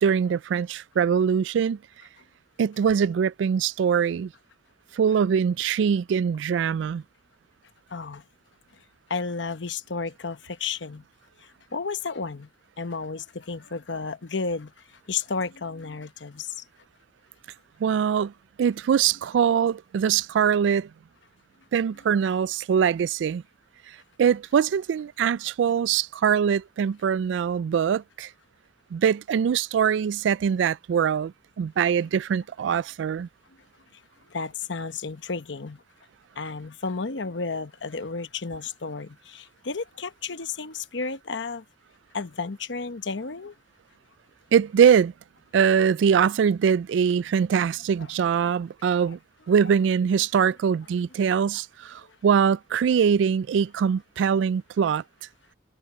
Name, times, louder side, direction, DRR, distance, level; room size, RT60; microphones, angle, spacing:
voice 1, 0.0-1.8 2.6-4.3 4.9-7.0 17.8-18.3 18.6-20.9 21.7-23.4 24.2-28.3 28.9-33.3 44.5-45.1 45.5-49.2 49.5-55.0, right 7 dB, 85° right, 0.3 m, -23 dB
voice 2, 7.9-8.2 9.1-11.0 11.7-12.5 12.8-14.7 15.1-16.5 34.3-35.8 36.4-41.6 42.1-43.5 48.0-48.1 54.3-54.4, left 4 dB, 85° left, 1.0 m, -32 dB
sound 1, 14.4-14.6 15.4-15.6 16.5-16.7 17.5-17.7 18.6-18.8 19.7-19.8 20.8-20.9, right 12 dB, 55° right, 2.4 m, -57 dB
head